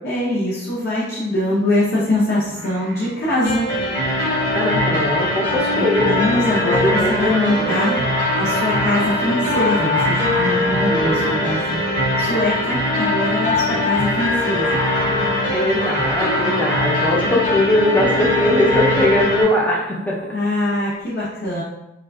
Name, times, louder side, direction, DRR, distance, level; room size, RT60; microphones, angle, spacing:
voice 1, 0.0-3.7 5.5-8.0 8.3-11.8 12.2-14.8 20.3-21.6, left 1 dB, 55° left, -7 dB, 0.6 m, -22 dB
Singing, 2.4-20.9, right 3 dB, 70° right, 0.4 m, -34 dB
sound 1, 3.4-19.4, left 1 dB, 75° left, 1.4 m, -21 dB
voice 2, 4.5-6.4 6.8-7.8 10.9-11.4 15.5-20.2, left 1 dB, 10° left, -3 dB, 0.4 m, -20 dB
3.6 x 2.4 x 2.2 m, 0.90 s
head